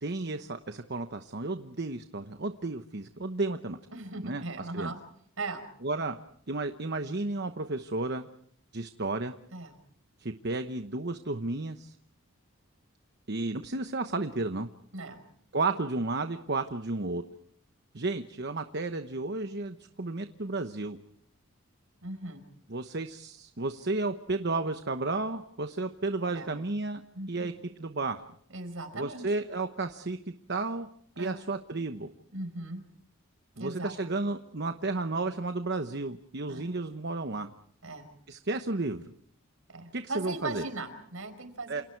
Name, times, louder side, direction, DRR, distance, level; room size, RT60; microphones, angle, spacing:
voice 1, 0.0-3.8 4.2-4.4 4.7-4.9 5.8-6.2 6.5-8.3 8.7-9.3 10.2-12.0 13.3-14.7 15.5-17.2 17.9-21.0 22.7-27.0 27.3-27.5 27.8-28.2 28.9-30.9 31.2-32.1 33.6-37.5 38.3-39.0 39.9-40.6 41.7-41.8, right 3 dB, 50° right, 8 dB, 1.1 m, -32 dB
voice 2, 3.9-5.0 5.4-5.6 9.5-9.8 14.9-15.2 22.0-22.4 26.3-26.5 27.1-27.5 28.5-29.2 31.2-31.4 32.3-32.8 33.5-33.9 36.5-36.7 37.8-38.1 39.7-41.8, right 2 dB, 70° right, 8 dB, 5.0 m, -38 dB
29.0 x 28.5 x 4.7 m, 0.64 s
head